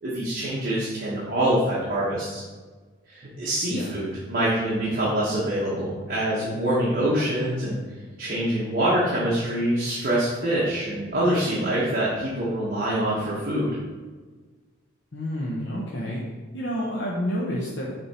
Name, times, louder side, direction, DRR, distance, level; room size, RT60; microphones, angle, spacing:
voice 1, 0.0-2.4 3.1-7.8 8.2-13.7, right 1 dB, 45° right, -8 dB, 1.3 m, -25 dB
voice 2, 15.1-16.2 16.5-17.9, equal, 65° left, -4 dB, 0.9 m, -29 dB
6.9 x 3.6 x 4.3 m, 1.4 s
head